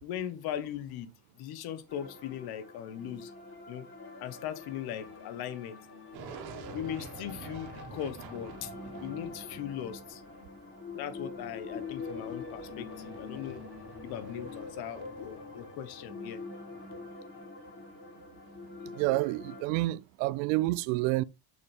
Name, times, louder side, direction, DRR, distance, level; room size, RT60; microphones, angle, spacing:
voice 1, 0.0-3.3 3.7-3.9 4.2-5.8 6.7-8.7 9.0-10.2 11.0-13.6 14.0-16.4, left 10 dB, 60° left, 1.5 m, -39 dB
sound 1, 1.9-19.6, left 4 dB, 30° left, 3.7 m, -45 dB
sound 2, 6.1-17.4, right 5 dB, 65° right, 1.9 m, -50 dB
voice 2, 18.8-21.2, right 19 dB, 85° right, 0.6 m, -29 dB
6.9 x 6.5 x 3.6 m
cardioid pair, 125°, 41 cm